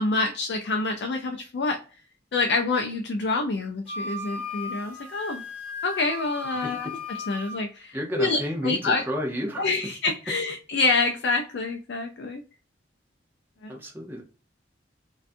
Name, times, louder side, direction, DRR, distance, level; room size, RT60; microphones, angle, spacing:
voice 1, 0.0-1.8 2.3-5.4 5.8-6.9 7.3-9.0 9.6-12.4 13.6-13.8, left 3 dB, 65° left, 3 dB, 0.4 m, -27 dB
Wind instrument woodwind instrument, 3.9-7.6, left 3 dB, 5° left, 1.4 m, -36 dB
voice 2, 7.9-9.7 13.7-14.2, equal, 10° right, 0 dB, 0.6 m, -31 dB
2.5 x 2.2 x 2.5 m, 0.36 s
head